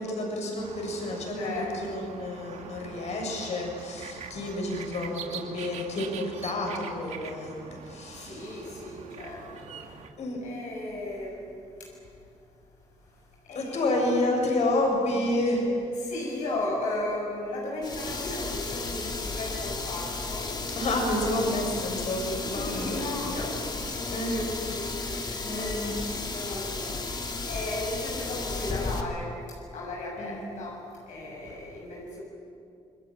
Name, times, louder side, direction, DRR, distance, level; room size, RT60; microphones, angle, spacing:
voice 1, 0.0-8.7 10.2-10.4 13.5-15.7 20.8-23.0 24.1-24.4 25.4-25.9 30.2-30.4, left 1 dB, 65° left, 1 dB, 7.6 m, -30 dB
sound 1, 0.6-10.1, right 6 dB, 70° right, 2.3 m, -44 dB
voice 2, 1.3-2.1 8.3-9.4 10.4-11.4 13.5-14.0 16.0-20.5 22.4-27.2 27.5-29.3 29.7-30.8 31.1-32.2, left 2 dB, 85° left, -2 dB, 6.9 m, -35 dB
sound 2, 17.8-29.0, left 3 dB, 35° left, 2.8 m, -34 dB
28.0 x 22.0 x 9.1 m, 2.5 s
cardioid pair, 105°, 12 cm